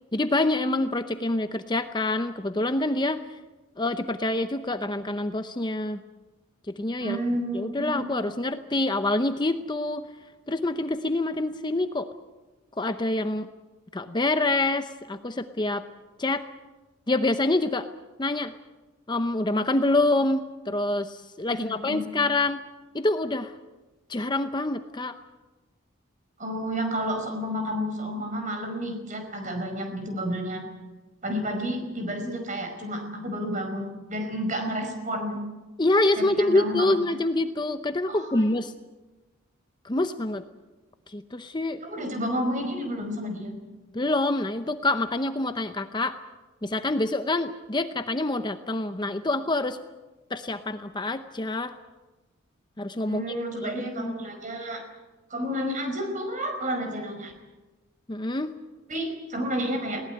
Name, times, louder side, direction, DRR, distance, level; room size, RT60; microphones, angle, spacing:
voice 1, 0.1-3.4 3.8-6.0 6.7-7.2 7.5-10.1 10.5-12.1 12.8-13.5 13.9-15.8 16.2-16.5 17.1-17.9 18.2-18.5 19.1-22.6 22.9-23.6 24.1-25.1 35.8-38.7 39.8-40.4 41.1-41.8 43.9-46.2 46.6-49.8 50.3-51.7 52.8-53.2 53.6-54.3 58.1-58.5, left 2 dB, 20° left, 9 dB, 0.7 m, -26 dB
voice 2, 7.0-8.0 21.5-22.1 26.4-30.7 31.2-35.4 36.2-37.2 38.1-38.4 41.8-43.5 53.1-54.8 55.3-57.3 58.9-60.0, equal, 35° right, 5 dB, 5.1 m, -31 dB
20.5 x 18.5 x 9.3 m, 1.2 s
head